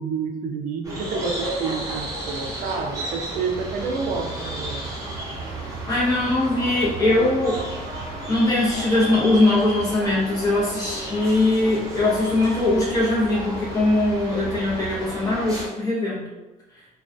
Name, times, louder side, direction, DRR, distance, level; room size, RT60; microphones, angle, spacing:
voice 1, 0.0-4.9, right 5 dB, 60° right, 4 dB, 0.4 m, -29 dB
sound 1, 0.8-15.7, right 1 dB, 20° right, 0.8 m, -32 dB
voice 2, 5.9-7.6 8.3-16.3, left 2 dB, 25° left, -7 dB, 0.8 m, -21 dB
2.3 x 2.3 x 2.5 m, 1.1 s
cardioid pair, 125°, 15 cm